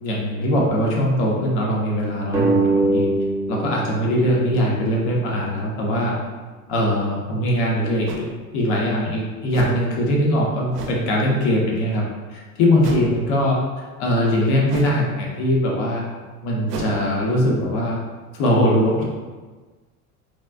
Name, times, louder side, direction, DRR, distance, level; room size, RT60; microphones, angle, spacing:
voice 1, 0.0-3.1 3.5-6.1 6.7-8.3 8.5-12.0 12.3-16.0 16.4-18.0 18.3-19.0, equal, 55° left, -3 dB, 1.0 m, -21 dB
sound 1, 2.3-5.5, right 2 dB, 5° right, 0.5 m, -23 dB
sound 2, 7.1-7.2 8.1-8.3 9.5-9.9 10.7-11.1 12.8-13.2 14.7-15.1 16.7-17.0, right 4 dB, 80° right, 0.7 m, -32 dB
4.1 x 2.4 x 2.3 m, 1.4 s
hypercardioid pair, 80°, 47 cm